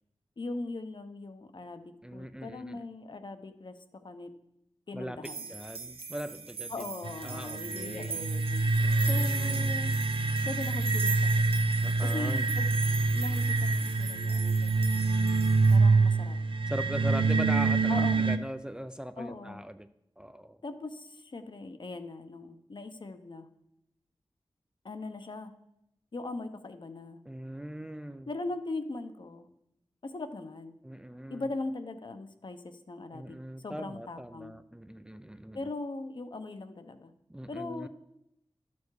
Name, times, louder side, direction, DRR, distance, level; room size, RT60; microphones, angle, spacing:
voice 1, 0.4-4.3 4.9-5.5 6.7-8.7 9.1-9.9 10.4-11.5 12.0-12.7 13.1-14.8 15.7-16.4 17.3-17.5 17.9-18.2 19.2-19.6 20.6-23.5 24.8-25.5 26.1-27.2 28.3-29.5 30.0-30.7 31.3-34.5 35.5-37.1 37.5-37.9, left 2 dB, 55° left, 8 dB, 0.9 m, -40 dB
voice 2, 2.0-2.8 4.9-6.9 7.2-8.2 8.8-9.8 11.8-12.5 16.7-19.9 20.2-20.6 27.3-28.3 30.8-31.5 33.1-35.6 37.3-37.9, equal, 10° right, 11 dB, 0.4 m, -40 dB
sound 1, 5.2-15.8, right 5 dB, 85° right, 0.9 m, -41 dB
sound 2, 7.0-18.4, right 3 dB, 65° right, 0.6 m, -26 dB
12.0 x 7.1 x 4.8 m, 0.81 s
wide cardioid pair, 85°, 10 cm